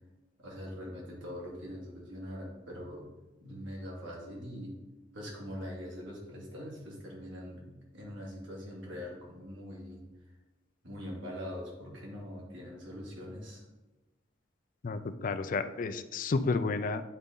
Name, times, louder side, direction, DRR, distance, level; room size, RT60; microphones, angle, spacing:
voice 1, 0.4-3.1 3.4-4.8 5.1-10.3 10.8-13.6, equal, 80° right, -3 dB, 2.2 m, -43 dB
voice 2, 14.8-17.0, left 3 dB, 45° left, 11 dB, 0.4 m, -31 dB
9.8 x 3.9 x 3.8 m, 1.1 s
head